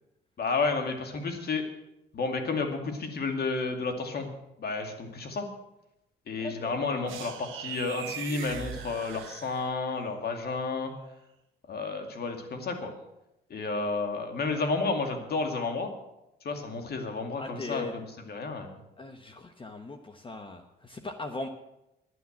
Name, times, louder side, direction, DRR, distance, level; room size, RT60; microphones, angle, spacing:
voice 1, 0.4-1.6 2.1-4.3 4.6-5.5 6.3-10.9 11.7-12.9 13.5-15.9 16.4-18.8, left 3 dB, 55° left, 5 dB, 2.4 m, -31 dB
voice 2, 6.4-6.9 17.4-17.9 19.0-21.5, left 2 dB, 25° left, 7 dB, 1.0 m, -39 dB
sound 1, 7.1-10.0, right 9 dB, 85° right, 1.2 m, -40 dB
11.0 x 9.7 x 7.4 m, 0.89 s
cardioid pair, 90°, 20 cm